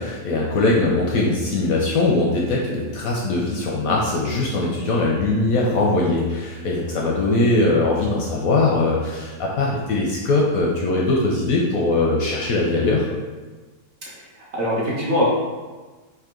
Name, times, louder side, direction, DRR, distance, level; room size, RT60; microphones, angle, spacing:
voice 1, 0.0-13.1, left 2 dB, 70° left, -3 dB, 0.8 m, -21 dB
voice 2, 14.0-15.3, left 1 dB, 55° right, -5 dB, 0.9 m, -23 dB
3.7 x 2.7 x 3.6 m, 1.3 s
omnidirectional pair, 1.9 m